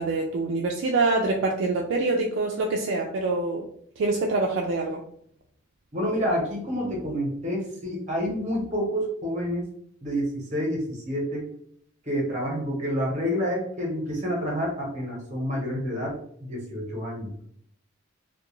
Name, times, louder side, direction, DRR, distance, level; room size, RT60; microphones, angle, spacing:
voice 1, 0.0-3.7 4.0-5.0, right 3 dB, 60° right, 0 dB, 0.3 m, -25 dB
voice 2, 5.9-9.7 10.0-11.4 12.1-17.3, equal, 35° right, -1 dB, 0.9 m, -28 dB
2.3 x 2.2 x 2.9 m, 0.64 s
head